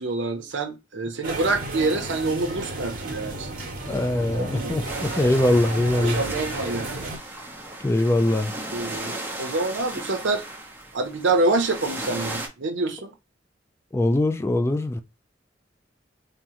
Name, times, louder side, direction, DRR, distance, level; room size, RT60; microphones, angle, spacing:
voice 1, 0.0-3.5 4.4-4.8 6.1-6.9 8.7-10.4 10.9-13.1, right 2 dB, 70° right, 0.6 m, -26 dB
sound 1, 1.2-7.2, right 2 dB, 50° right, 0.9 m, -33 dB
voice 2, 3.9-6.2 7.8-8.5 13.9-15.0, left 1 dB, 15° left, 0.3 m, -22 dB
sound 2, 4.9-12.5, right 2 dB, 10° right, 0.7 m, -36 dB
3.6 x 2.0 x 2.8 m
head